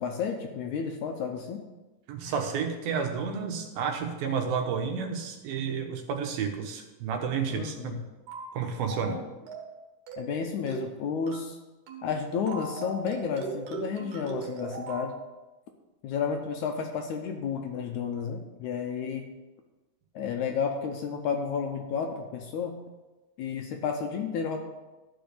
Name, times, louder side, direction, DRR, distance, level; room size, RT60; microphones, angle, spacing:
voice 1, 0.0-1.6 7.5-8.0 9.1-9.2 10.2-11.6 12.0-15.2 16.0-19.3 20.2-22.7 23.4-24.6, left 6 dB, 75° left, 4 dB, 1.9 m, -32 dB
voice 2, 2.1-8.0 8.5-9.2, right 6 dB, 85° right, 4 dB, 3.0 m, -31 dB
sound 1, 8.3-8.5 8.9-9.1 9.5-9.8 10.1-10.3 10.7-10.9 11.3-11.5 11.9-12.1 12.5-15.1, right 4 dB, 65° right, 2.8 m, -38 dB
12.5 x 5.2 x 6.8 m, 1.1 s
omnidirectional pair, 4.1 m